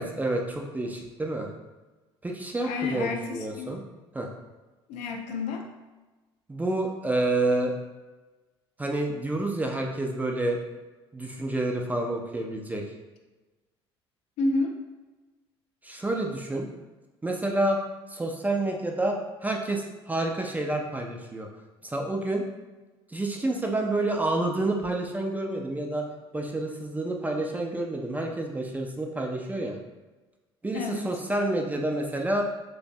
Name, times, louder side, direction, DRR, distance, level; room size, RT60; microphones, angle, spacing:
voice 1, 0.0-1.5 2.2-3.8 4.1-4.3 6.5-7.7 8.8-10.6 11.1-12.8 15.8-16.7 17.2-17.8 18.1-21.5 21.8-22.4 23.1-26.1 26.3-29.8 30.6-32.5, right 2 dB, 10° right, 1 dB, 0.3 m, -29 dB
voice 2, 2.6-3.7 4.9-5.7 14.4-14.8 30.7-31.1, left 3 dB, 55° left, 3 dB, 0.4 m, -30 dB
3.2 x 2.0 x 2.5 m, 1.2 s
figure-of-eight pair, 60°, 14 cm